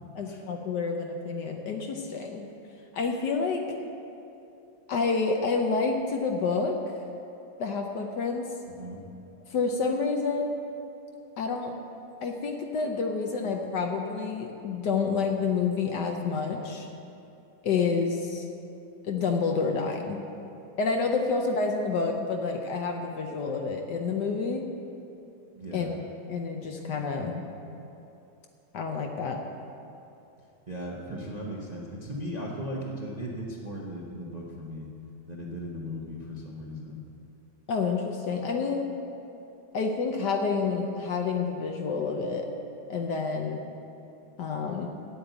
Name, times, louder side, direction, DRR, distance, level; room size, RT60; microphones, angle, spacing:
voice 1, 0.2-2.5 2.9-3.8 4.9-6.8 7.6-8.5 9.5-10.6 11.4-11.8 12.2-16.9 17.6-18.5 19.0-20.2 20.8-24.7 25.7-26.0 26.3-27.4 28.7-29.4 37.7-38.9 39.7-42.5 42.9-43.6 44.4-44.9, left 4 dB, 65° left, 3 dB, 1.2 m, -28 dB
voice 2, 25.6-25.9 30.7-34.9 35.3-37.0, equal, 30° right, -3 dB, 0.8 m, -37 dB
8.7 x 8.7 x 8.1 m, 2.7 s
omnidirectional pair, 2.3 m